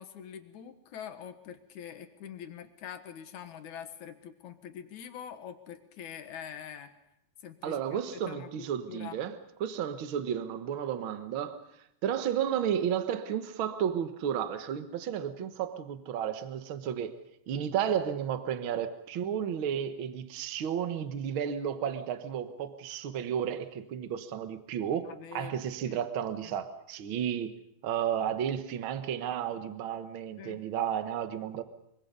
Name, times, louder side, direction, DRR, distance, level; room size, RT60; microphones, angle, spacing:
voice 1, 0.0-6.9 7.4-9.2 25.0-25.6 25.8-26.0 26.4-26.6 30.4-30.6, left 9 dB, 60° left, 2.5 m, -44 dB
voice 2, 7.6-11.6 12.0-17.2 17.5-27.6 27.8-31.6, right 9 dB, 80° right, 1.1 m, -32 dB
24.0 x 24.0 x 5.4 m
omnidirectional pair, 4.2 m